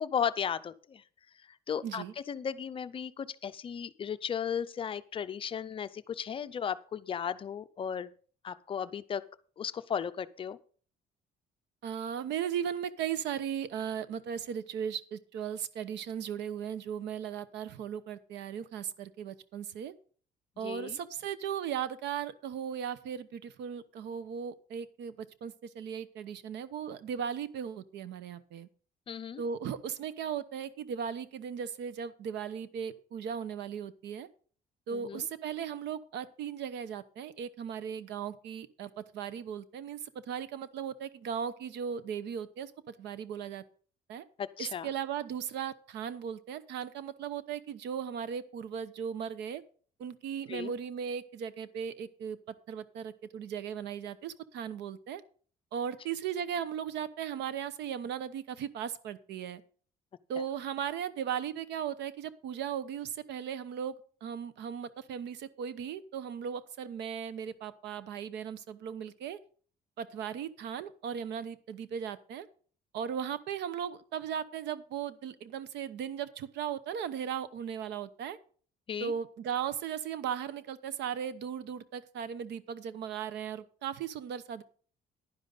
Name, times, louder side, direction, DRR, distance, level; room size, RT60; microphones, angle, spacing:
voice 1, 0.0-1.0 1.7-8.1 8.4-9.2 9.6-10.6 20.6-21.0 29.1-29.4 34.9-35.3 44.4-44.9 50.5-50.7 78.9-79.1, left 8 dB, 30° left, 13 dB, 0.5 m, -35 dB
voice 2, 1.8-2.1 11.8-19.9 20.6-28.7 29.4-34.3 34.9-43.6 44.1-44.2 44.6-49.6 50.0-55.2 55.7-59.6 60.3-63.9 64.2-69.4 70.0-72.5 72.9-78.4 79.0-84.6, right 8 dB, 85° right, 15 dB, 0.9 m, -37 dB
10.5 x 10.5 x 4.0 m, 0.43 s
cardioid pair, 165°, 17 cm